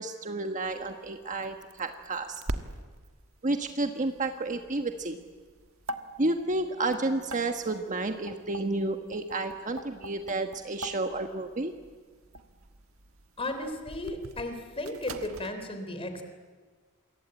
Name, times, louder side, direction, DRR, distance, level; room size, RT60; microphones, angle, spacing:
voice 1, 0.0-2.4 3.4-5.2 6.2-11.7, right 2 dB, 35° right, 5 dB, 1.3 m, -31 dB
sound 1, 0.6-15.5, right 1 dB, 70° right, 1.5 m, -43 dB
voice 2, 13.4-16.2, left 1 dB, 25° left, 7 dB, 3.8 m, -35 dB
28.0 x 23.0 x 8.9 m, 1.5 s
head